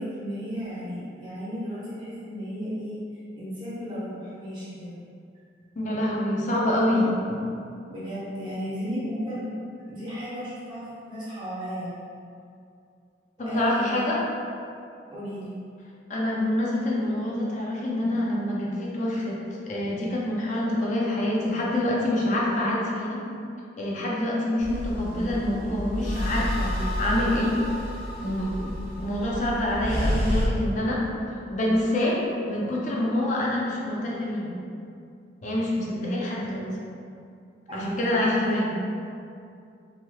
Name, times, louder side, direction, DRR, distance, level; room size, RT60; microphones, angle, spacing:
voice 1, 0.0-5.0 6.7-7.1 7.9-9.5 9.9-12.0 13.4-14.2 15.1-15.6 37.7-38.7, equal, 25° right, -11 dB, 0.9 m, -34 dB
voice 2, 5.8-7.1 13.4-14.2 16.1-19.4 19.7-23.2 23.8-27.5 28.2-31.0 31.5-32.2 32.5-34.5 35.4-36.6 37.7-38.7, left 1 dB, 40° left, -4 dB, 0.5 m, -26 dB
sound 1, 24.6-30.4, equal, 55° right, 0.8 m, -30 dB
3.2 x 2.8 x 2.3 m, 2.4 s
head